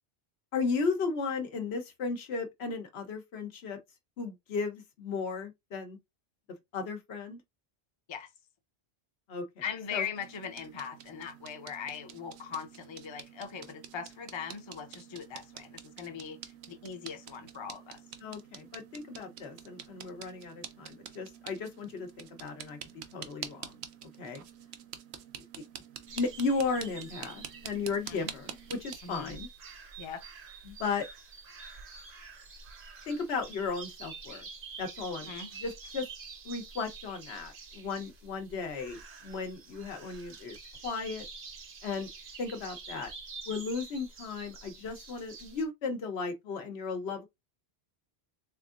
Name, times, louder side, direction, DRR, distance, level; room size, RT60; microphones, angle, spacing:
voice 1, 0.5-3.8 4.2-6.0 6.7-7.4 9.3-9.5 9.9-10.1 18.2-22.8 23.1-23.7 24.2-24.4 26.2-29.5 30.6-31.1 33.1-34.4 34.8-36.1 36.4-40.6 40.8-41.2 41.8-42.1 42.4-43.1 43.5-47.3, left 4 dB, 85° left, 1.1 m, -35 dB
voice 2, 9.6-16.4 16.7-18.0 28.1-28.3 29.0-29.4 30.0-30.2 35.3-35.5, left 7 dB, 35° left, 0.5 m, -40 dB
sound 1, 10.2-28.9, right 9 dB, 90° right, 0.9 m, -47 dB
sound 2, 26.1-45.7, right 4 dB, 60° right, 1.0 m, -48 dB
3.5 x 3.5 x 2.4 m
omnidirectional pair, 1.1 m